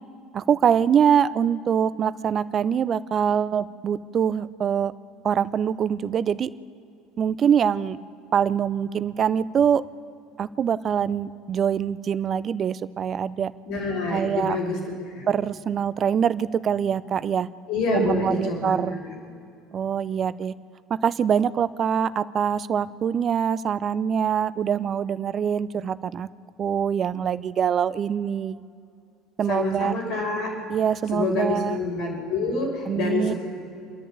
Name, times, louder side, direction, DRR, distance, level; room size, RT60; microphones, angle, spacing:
voice 1, 0.3-4.9 5.2-6.5 7.2-8.0 8.3-9.8 10.4-13.5 14.1-14.6 15.3-17.5 17.9-19.0 19.7-20.5 20.9-26.3 26.6-28.6 29.4-29.9 30.7-31.8 32.9-33.3, right 8 dB, 40° right, 16 dB, 0.7 m, -24 dB
voice 2, 13.7-14.8 15.0-15.2 17.7-19.1 29.5-30.5 31.1-33.4, left 3 dB, 70° left, -6 dB, 5.1 m, -27 dB
27.5 x 11.0 x 8.8 m, 2.6 s
hypercardioid pair, 70°, 0 cm